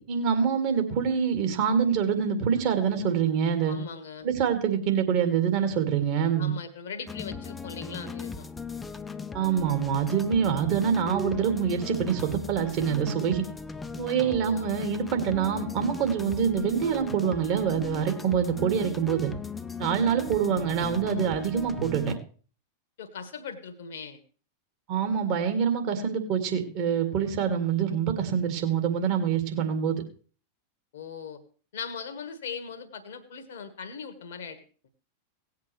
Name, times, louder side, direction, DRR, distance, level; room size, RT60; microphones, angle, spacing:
voice 1, 0.0-3.8 4.2-6.5 9.3-13.4 14.0-19.3 19.8-22.1 24.9-30.0, right 7 dB, 45° right, 5 dB, 2.2 m, -25 dB
voice 2, 3.7-4.3 6.4-8.5 14.2-14.7 23.0-24.2 30.9-31.4 31.7-34.6, left 6 dB, 60° left, 8 dB, 1.3 m, -39 dB
sound 1, 7.1-22.2, left 4 dB, 10° left, 0.6 m, -38 dB
18.0 x 8.3 x 3.2 m, 0.40 s
figure-of-eight pair, 90°, 0 cm